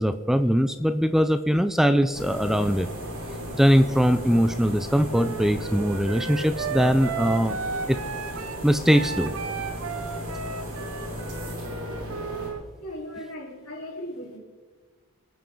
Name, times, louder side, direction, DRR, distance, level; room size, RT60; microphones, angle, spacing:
voice 1, 0.0-2.9 3.5-7.6 7.9-8.0 8.6-9.3, equal, ahead, 10 dB, 0.4 m, -21 dB
sound 1, 2.1-12.5, equal, 85° right, 4.9 m, -35 dB
Wind instrument woodwind instrument, 5.1-12.6, right 6 dB, 65° right, 1.0 m, -34 dB
voice 2, 12.8-14.4, equal, 85° left, -2 dB, 4.2 m, -37 dB
26.0 x 9.8 x 3.9 m, 1.4 s
head